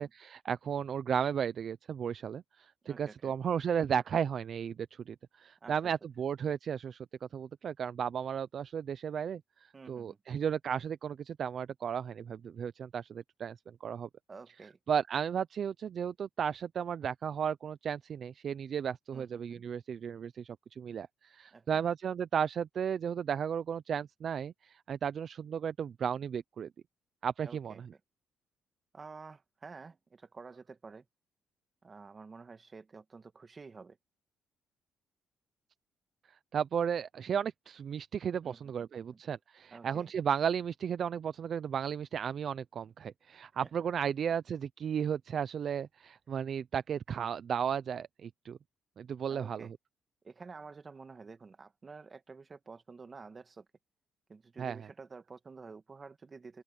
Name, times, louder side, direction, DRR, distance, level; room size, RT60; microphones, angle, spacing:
voice 1, 0.0-7.1 7.3-14.1 14.9-26.7 27.2-27.7 36.5-48.6 49.0-49.7 54.6-54.9, right 8 dB, 55° right, 0.6 m, -34 dB
voice 2, 2.8-3.3 5.6-5.9 9.7-10.2 14.3-14.8 19.1-19.6 21.5-21.8 27.4-27.8 28.9-31.1 31.8-34.0 38.4-39.2 39.7-40.1 43.6-43.7 49.3-49.7 50.2-53.7 54.3-56.6, right 4 dB, 35° right, 2.1 m, -50 dB
open air
cardioid pair, 90°, 0 cm